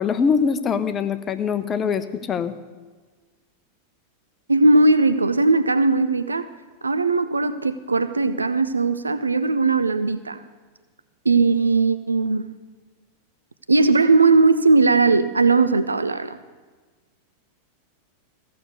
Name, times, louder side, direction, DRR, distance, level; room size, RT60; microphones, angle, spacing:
voice 1, 0.0-2.5, left 6 dB, 25° left, 11 dB, 0.8 m, -23 dB
voice 2, 4.5-6.5 6.8-10.4 11.3-12.5 13.7-16.4, right 3 dB, 80° right, 13 dB, 0.4 m, -18 dB
15.0 x 6.8 x 8.2 m, 1.4 s
figure-of-eight pair, 90°, 0 cm